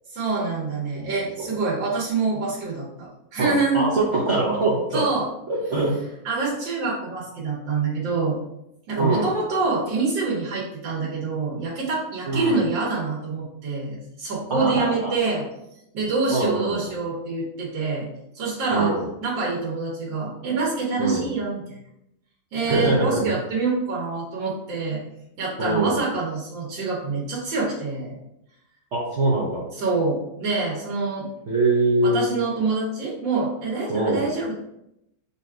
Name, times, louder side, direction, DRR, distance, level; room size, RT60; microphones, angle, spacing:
voice 1, 0.1-4.0 4.9-5.3 6.2-8.4 8.9-15.5 15.9-18.1 18.3-18.9 19.2-21.8 22.5-25.0 25.4-28.2 29.8-31.3 32.0-34.6, right 4 dB, 90° right, -4 dB, 1.7 m, -26 dB
voice 2, 3.4-5.1 5.5-5.9 9.0-9.3 12.3-12.6 14.5-15.1 16.3-16.9 18.7-19.1 21.0-21.2 22.6-23.4 25.6-26.0 28.9-29.6 31.5-32.3 33.9-34.2, right 2 dB, 55° right, -4 dB, 0.9 m, -23 dB
4.0 x 2.4 x 4.3 m, 0.83 s
omnidirectional pair, 2.0 m